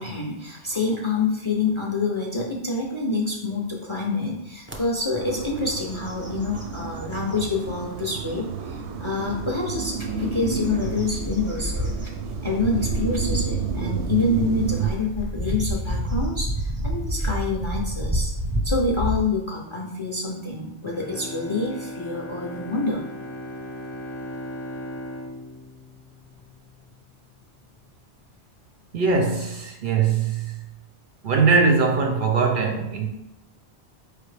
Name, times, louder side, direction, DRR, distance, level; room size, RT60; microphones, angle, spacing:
voice 1, 0.0-12.1 12.4-18.3 18.6-23.0, left 3 dB, 40° left, -1 dB, 0.4 m, -27 dB
sound 1, 4.7-4.8 5.3-5.6 5.9-7.4 8.0-8.1 9.8-19.2, equal, 15° right, 0.5 m, -29 dB
sound 2, 5.2-14.9, right 7 dB, 80° right, 0.9 m, -31 dB
Bowed string instrument, 20.8-27.0 27.4-27.5, equal, 25° left, 0.8 m, -37 dB
voice 2, 28.9-30.6 31.2-33.1, right 4 dB, 60° right, 3 dB, 0.6 m, -21 dB
4.7 x 3.3 x 3.2 m, 0.88 s
omnidirectional pair, 1.1 m